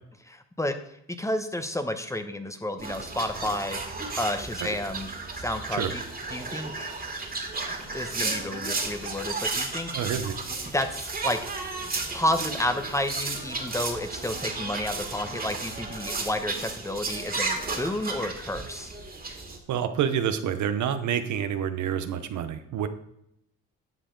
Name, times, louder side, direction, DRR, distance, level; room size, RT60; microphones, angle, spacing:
voice 1, 0.3-0.8 1.2-3.8 4.2-5.1 5.4-6.0 6.3-6.9 7.7-9.9 10.7-11.4 12.1-18.9, left 1 dB, 10° left, 8 dB, 1.0 m, -31 dB
sound 1, 2.8-19.6, right 3 dB, 30° right, 2.1 m, -33 dB
voice 2, 9.9-10.3 19.7-22.9, right 9 dB, 75° right, 9 dB, 0.9 m, -28 dB
11.0 x 7.5 x 3.9 m, 0.77 s
cardioid pair, 90°, 30 cm